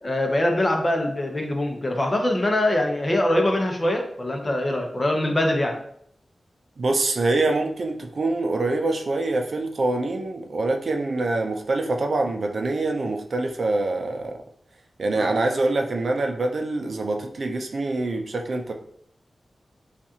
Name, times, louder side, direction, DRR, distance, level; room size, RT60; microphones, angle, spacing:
voice 1, 0.0-5.8 15.2-15.3, left 1 dB, 30° left, 2 dB, 0.8 m, -23 dB
voice 2, 6.8-14.4 15.0-18.7, right 2 dB, 65° right, 4 dB, 0.6 m, -25 dB
7.0 x 2.5 x 2.8 m, 0.67 s
wide cardioid pair, 85°, 0 cm